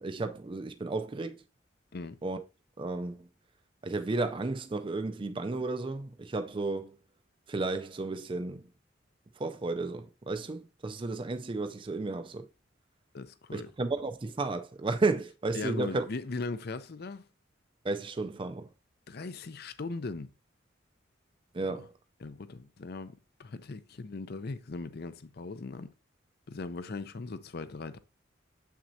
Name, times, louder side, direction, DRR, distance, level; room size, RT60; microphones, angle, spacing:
voice 1, 0.0-1.4 2.2-2.4 2.8-3.3 3.8-7.0 7.5-8.7 9.4-12.5 13.5-16.0 17.8-18.7 21.5-21.9, right 3 dB, 25° right, 0.4 m, -33 dB
voice 2, 13.1-13.7 15.5-17.3 19.1-20.3 22.2-25.9 26.5-28.0, left 3 dB, 55° left, 0.6 m, -39 dB
7.2 x 6.1 x 2.7 m
head